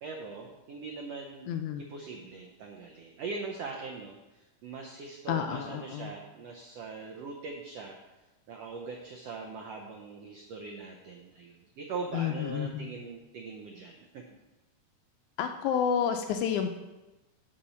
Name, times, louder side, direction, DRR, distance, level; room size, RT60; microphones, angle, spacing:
voice 1, 0.0-1.4 1.8-4.2 4.6-8.0 8.5-14.2, right 4 dB, 80° right, 1 dB, 1.4 m, -41 dB
voice 2, 1.5-1.8 5.3-6.1 12.1-12.9 15.4-16.7, left 8 dB, 80° left, 6 dB, 1.8 m, -30 dB
8.5 x 4.2 x 6.9 m, 1.1 s
omnidirectional pair, 3.8 m